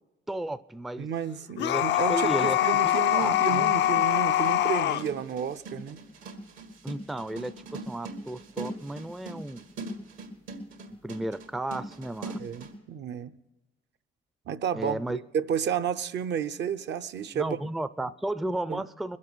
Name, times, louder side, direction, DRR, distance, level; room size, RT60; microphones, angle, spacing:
voice 1, 0.3-1.1 1.6-2.6 2.8-3.7 6.8-9.6 11.0-12.4 14.7-15.2 17.3-19.2, right 1 dB, ahead, 0.4 m, -33 dB
voice 2, 1.0-6.0 12.4-13.3 14.5-17.6 18.7-18.8, right 8 dB, 60° right, 0.6 m, -31 dB
sound 1, 1.6-5.0, left 13 dB, 60° left, 0.4 m, -24 dB
sound 2, 3.0-12.7, right 2 dB, 85° right, 2.1 m, -41 dB
21.5 x 7.5 x 6.2 m
cardioid pair, 90°, 20 cm